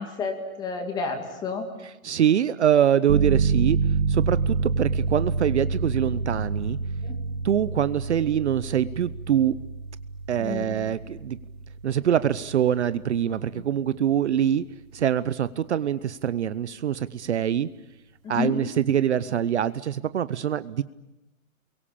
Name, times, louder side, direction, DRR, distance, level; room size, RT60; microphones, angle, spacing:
voice 1, 0.0-1.6 7.0-7.2 10.4-10.7 13.5-13.6 18.3-18.5, left 4 dB, 10° left, 5 dB, 2.2 m, -30 dB
voice 2, 1.8-3.8 4.1-6.8 7.4-9.6 10.3-11.4 11.8-14.6 14.9-17.7 18.3-20.8, right 9 dB, 55° right, 16 dB, 0.9 m, -24 dB
sound 1, 3.1-13.6, right 4 dB, 85° right, 2.4 m, -28 dB
29.0 x 23.0 x 8.7 m, 0.94 s
hypercardioid pair, 175°, 42 cm